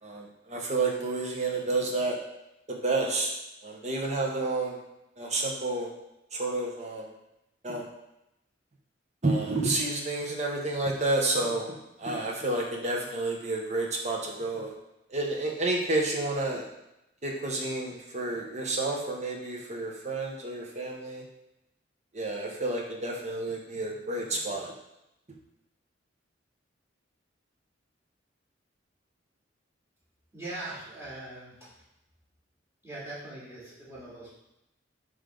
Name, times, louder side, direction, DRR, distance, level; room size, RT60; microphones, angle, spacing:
voice 1, 0.0-2.2 2.7-3.3 3.6-4.8 5.2-5.9 6.3-7.1 7.6-7.9 9.2-11.7 12.0-14.7 15.1-16.6 17.2-21.2 22.1-24.7, right 2 dB, 35° right, 0 dB, 1.1 m, -30 dB
voice 2, 30.3-31.7 32.8-34.4, right 2 dB, 15° right, -8 dB, 2.6 m, -41 dB
8.8 x 3.4 x 3.9 m, 0.88 s
head